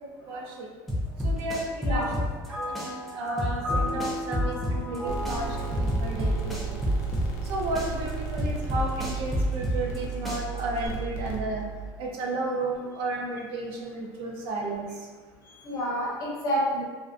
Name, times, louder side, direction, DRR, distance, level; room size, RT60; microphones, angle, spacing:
voice 1, 0.0-0.7 1.2-2.2 2.7-6.8 7.4-11.6 12.0-15.1, right 2 dB, 65° right, -1 dB, 0.5 m, -33 dB
sound 1, 0.9-2.5 2.7-5.0 5.2-7.5 7.7-10.0 10.2-10.9, left 1 dB, ahead, 0.4 m, -28 dB
voice 2, 1.8-2.1 15.4-16.8, equal, 35° left, -5 dB, 0.8 m, -29 dB
sound 2, 2.5-8.0, left 1 dB, 20° right, 0.7 m, -36 dB
sound 3, 5.1-11.9, right 5 dB, 85° left, 0.5 m, -34 dB
2.5 x 2.1 x 2.4 m, 1.4 s
cardioid pair, 150°, 9 cm